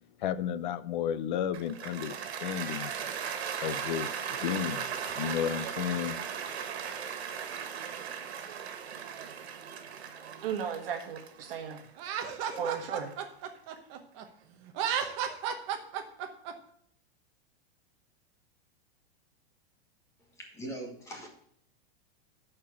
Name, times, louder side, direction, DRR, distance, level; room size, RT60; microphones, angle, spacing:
voice 1, 0.2-2.9 3.6-6.2, left 9 dB, 50° left, 15 dB, 0.6 m, -33 dB
Cheering / Applause, 1.5-13.8, right 7 dB, 90° right, 1.7 m, -38 dB
voice 2, 10.2-11.8 12.6-13.1, right 7 dB, 65° right, 3 dB, 1.5 m, -35 dB
Laughter, 12.0-14.2 14.7-16.5, right 8 dB, 30° right, 0.9 m, -33 dB
voice 3, 20.2-21.3, right 1 dB, 10° left, 1 dB, 1.4 m, -41 dB
11.0 x 4.5 x 6.2 m, 0.66 s
supercardioid pair, 175°, 31 cm